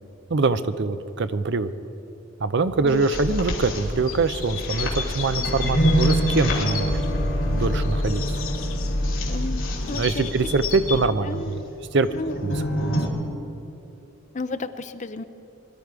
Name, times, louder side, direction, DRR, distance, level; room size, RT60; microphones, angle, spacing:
voice 1, 0.3-1.7 2.4-8.2 9.9-11.6 11.9-12.1 12.4-12.9, right 3 dB, 55° right, 12 dB, 0.6 m, -24 dB
sound 1, 2.9-13.1, equal, 65° left, 2.8 m, -28 dB
sound 2, 3.1-11.1, left 1 dB, 85° left, 1.3 m, -28 dB
voice 2, 9.3-10.3 11.3-11.6 12.1-12.3 14.3-15.2, left 3 dB, 35° left, 10 dB, 0.6 m, -33 dB
22.5 x 11.5 x 4.8 m, 2.8 s
head